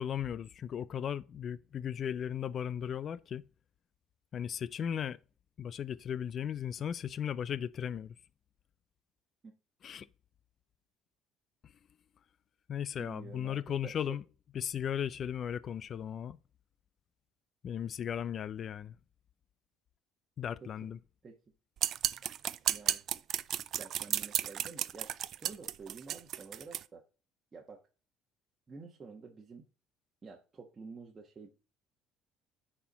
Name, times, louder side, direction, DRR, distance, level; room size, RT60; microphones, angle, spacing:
voice 1, 0.0-3.4 4.3-5.2 5.6-8.2 9.8-10.1 12.7-14.2 14.5-16.4 17.6-19.0 20.4-21.0, left 9 dB, 45° left, 0.5 m, -36 dB
voice 2, 13.0-14.2 20.6-20.7 21.2-21.4 22.7-23.0 23.7-27.0 27.5-27.8 28.7-29.7 30.2-31.5, right 4 dB, 30° right, 1.3 m, -49 dB
sound 1, 21.8-26.8, right 10 dB, 55° right, 0.4 m, -33 dB
10.0 x 4.5 x 4.1 m
supercardioid pair, 100°, 0 cm